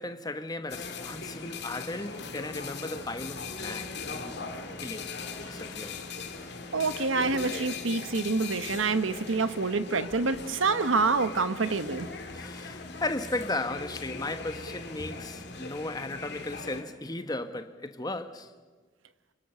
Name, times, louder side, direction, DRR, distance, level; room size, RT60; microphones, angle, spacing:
voice 1, 0.0-4.4 4.8-5.1 5.4-6.1 12.3-18.5, left 2 dB, 20° left, 1.1 m, -36 dB
sound 1, 0.7-16.8, left 4 dB, 55° left, 2.3 m, -39 dB
voice 2, 6.7-12.1, right 4 dB, 85° right, 1.1 m, -27 dB
28.0 x 25.0 x 6.7 m
head